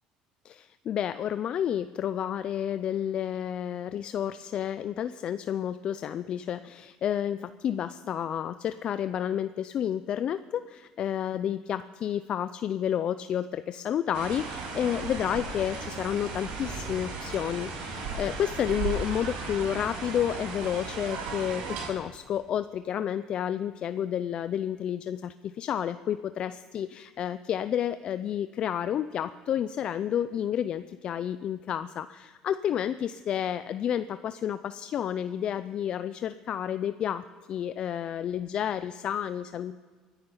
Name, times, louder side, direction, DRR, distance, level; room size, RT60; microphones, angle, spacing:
voice 1, 0.4-39.8, left 9 dB, 50° left, 13 dB, 0.4 m, -30 dB
sound 1, 14.1-21.9, right 4 dB, 80° right, 4.9 m, -36 dB
24.0 x 10.0 x 5.4 m, 1.5 s
cardioid pair, 120°, 2 cm